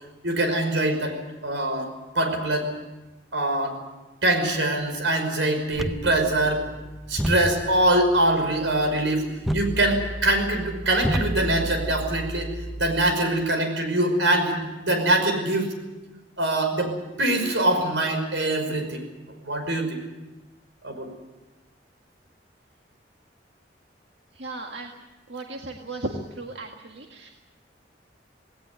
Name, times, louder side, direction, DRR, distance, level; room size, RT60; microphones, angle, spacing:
voice 1, 0.2-1.1 1.4-1.9 2.2-2.7 3.3-3.8 4.2-6.6 7.1-9.3 9.5-15.7 16.4-16.9 17.2-19.1 19.4-20.0 20.8-21.1, right 1 dB, 90° right, 5 dB, 5.5 m, -23 dB
sound 1, 5.7-13.1, equal, ahead, 0.7 m, -32 dB
voice 2, 24.3-24.9 25.3-27.3, right 2 dB, 70° right, 2 dB, 1.9 m, -35 dB
19.0 x 18.5 x 9.7 m, 1.1 s
head